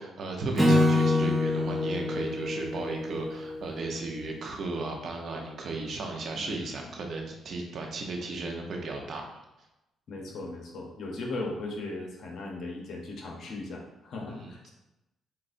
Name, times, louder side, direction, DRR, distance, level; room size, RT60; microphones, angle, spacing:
voice 1, 0.0-9.4 14.3-14.5, right 3 dB, 60° right, 1 dB, 0.9 m, -35 dB
Acoustic guitar / Strum, 0.6-3.9, left 2 dB, ahead, 1.1 m, -26 dB
voice 2, 6.3-6.9 10.1-14.7, left 2 dB, 65° left, 0 dB, 1.1 m, -38 dB
7.5 x 2.6 x 2.7 m, 0.95 s
cardioid pair, 90°, 0 cm